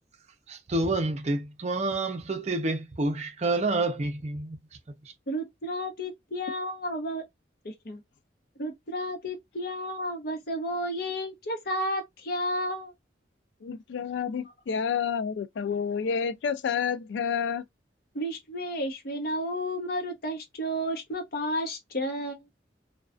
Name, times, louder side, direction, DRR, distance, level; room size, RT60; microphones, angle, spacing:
voice 1, 0.5-4.6, right 2 dB, 35° right, 0.5 m, -28 dB
voice 2, 5.3-7.2 7.6-8.0 8.6-12.9 18.1-22.4, equal, 55° left, 0.8 m, -32 dB
voice 3, 13.6-17.7, left 6 dB, 75° left, 0.3 m, -29 dB
2.3 x 2.2 x 2.3 m
head